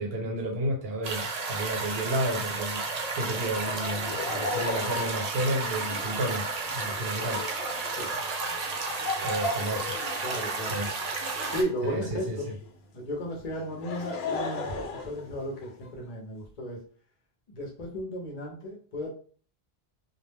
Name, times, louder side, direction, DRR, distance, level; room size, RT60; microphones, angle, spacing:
voice 1, 0.0-2.8 3.1-6.5 6.7-7.4 9.2-9.9 10.7-10.9 11.8-12.4, right 1 dB, 70° right, 0 dB, 1.0 m, -31 dB
sound 1, 1.0-11.6, right 4 dB, 55° right, 0.5 m, -32 dB
Laughter, 3.6-12.7 13.5-15.9, left 3 dB, 75° left, 0.8 m, -37 dB
voice 2, 10.2-10.7 11.5-12.5 12.9-16.8 17.5-19.1, equal, 45° left, -1 dB, 0.7 m, -34 dB
2.3 x 2.0 x 3.2 m, 0.43 s
omnidirectional pair, 1.1 m